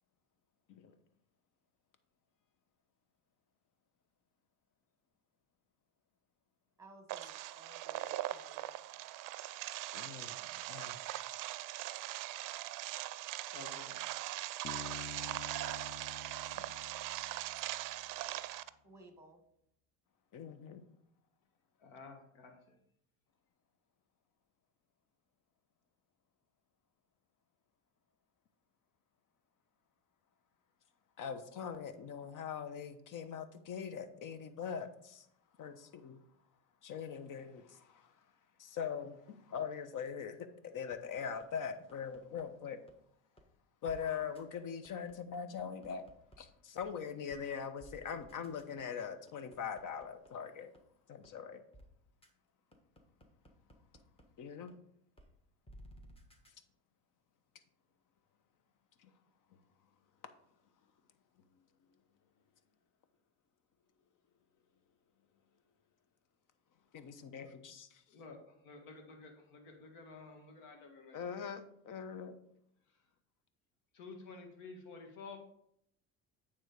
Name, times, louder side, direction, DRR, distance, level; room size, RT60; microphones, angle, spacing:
voice 1, 6.8-8.8 18.8-19.4, right 2 dB, 5° right, 5 dB, 1.6 m, -58 dB
sound 1, 7.1-18.7, right 15 dB, 55° right, 0.5 m, -41 dB
voice 2, 9.9-10.4 10.7-11.3 16.5-16.6 20.3-20.9 31.2-35.2 35.6-36.2 36.8-38.1 38.6-42.8 43.8-46.1 46.4-50.7 51.1-51.6 54.4-54.8 59.0-59.1 66.9-68.0 71.1-72.4, left 7 dB, 55° left, 10 dB, 1.0 m, -42 dB
voice 3, 13.5-14.3 21.8-22.6 68.1-71.5 73.9-75.4, left 4 dB, 85° left, 3 dB, 1.7 m, -52 dB
Bass guitar, 14.6-18.2, left 6 dB, 35° left, 0.5 m, -50 dB
sound 2, 40.9-42.4 42.9-43.0 43.4-43.5 43.9-44.0 44.3-44.4 44.8-46.4 46.8-46.9 47.3-47.4 47.8-50.3 50.7-50.8 51.2-51.3 51.7-51.9 52.2-52.3 52.7-54.2 54.7-54.8 55.2-55.3 55.7-56.5, equal, 15° left, 1.4 m, -57 dB
9.0 x 3.7 x 5.1 m, 0.72 s
supercardioid pair, 85°, 39 cm